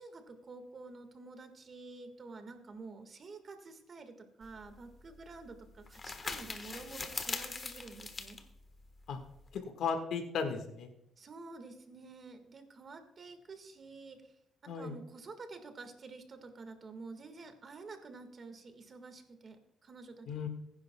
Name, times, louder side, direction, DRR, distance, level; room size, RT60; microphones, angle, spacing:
voice 1, 0.0-8.4 11.2-14.4 14.7-20.5, right 3 dB, 45° right, 8 dB, 1.7 m, -49 dB
sound 1, 4.4-9.6, left 4 dB, 35° left, 1.3 m, -43 dB
voice 2, 9.5-10.9 14.7-14.9 20.3-20.5, left 5 dB, 75° left, 6 dB, 1.7 m, -35 dB
21.5 x 10.5 x 2.3 m, 0.78 s
cardioid pair, 90°, 0 cm